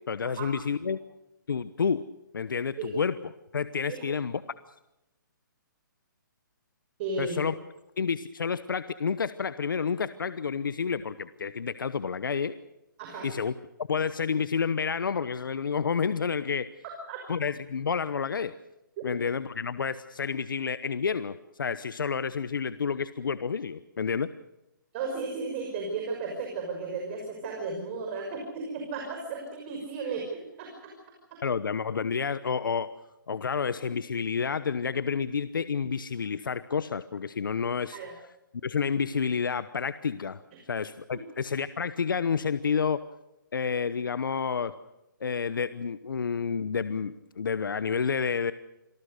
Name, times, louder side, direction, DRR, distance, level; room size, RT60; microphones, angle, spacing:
voice 1, 0.1-1.0 1.5-2.0 2.3-3.2 3.5-4.4 7.2-7.5 8.0-12.5 13.2-13.5 13.9-16.7 17.3-18.5 19.0-24.3 31.4-32.9 33.3-38.0 38.6-40.4 40.7-43.0 43.5-44.7 45.2-48.5, left 6 dB, 75° left, 14 dB, 1.0 m, -29 dB
voice 2, 7.0-7.4 13.0-13.3 17.1-17.2 24.9-30.9 31.3-31.4 37.9-38.1 41.1-41.2, right 4 dB, 35° right, 1 dB, 6.0 m, -34 dB
27.0 x 19.0 x 6.6 m, 0.93 s
hypercardioid pair, 145°, 11 cm